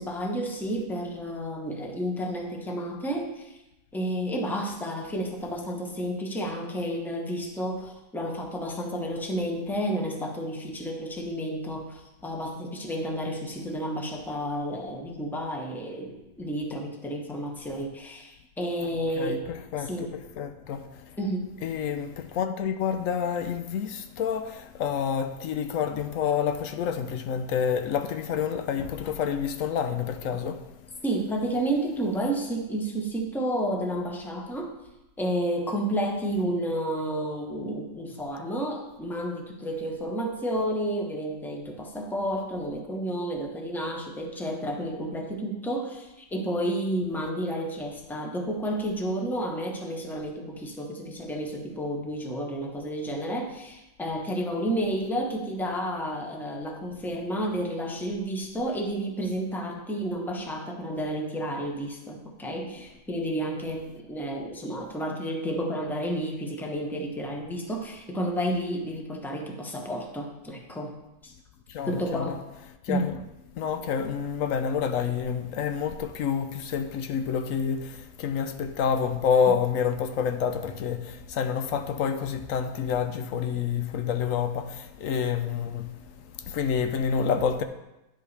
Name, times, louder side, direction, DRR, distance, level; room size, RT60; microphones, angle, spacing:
voice 1, 0.0-3.5 3.9-19.4 19.8-20.2 21.2-21.5 31.0-34.7 35.2-70.9 71.2-71.3 71.9-72.4 72.9-73.1 79.5-79.6, right 1 dB, ahead, 0.8 m, -31 dB
voice 2, 19.2-20.1 20.4-21.2 21.6-31.0 71.7-72.3 72.8-73.2 73.5-87.6, left 7 dB, 80° left, 1.0 m, -28 dB
10.0 x 7.7 x 3.3 m
omnidirectional pair, 1.4 m